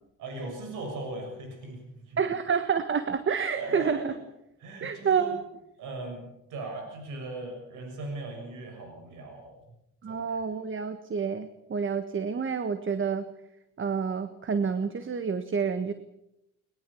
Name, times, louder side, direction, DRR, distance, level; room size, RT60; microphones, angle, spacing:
voice 1, 0.2-1.8 2.1-2.2 3.6-4.2 4.6-5.3 5.8-9.6 10.1-10.2, right 2 dB, 85° right, 3 dB, 7.0 m, -38 dB
voice 2, 2.2-4.1 4.8-5.6 10.0-13.3 13.8-15.9, right 6 dB, 40° right, 10 dB, 1.5 m, -28 dB
21.5 x 21.0 x 7.1 m, 0.85 s
cardioid pair, 90°, 30 cm